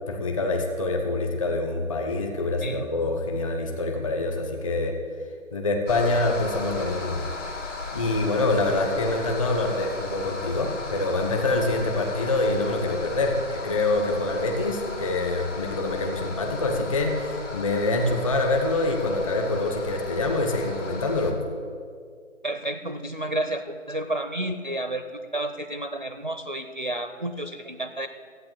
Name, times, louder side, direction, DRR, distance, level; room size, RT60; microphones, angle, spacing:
voice 1, 0.1-5.0 5.5-7.3 7.9-21.4, left 2 dB, 25° left, 3 dB, 1.0 m, -25 dB
sound 1, 5.9-21.3, left 3 dB, 65° left, 2.0 m, -36 dB
voice 2, 22.4-28.1, right 1 dB, 40° right, 9 dB, 0.4 m, -31 dB
13.5 x 8.5 x 7.7 m, 2.1 s
figure-of-eight pair, 155°, 39 cm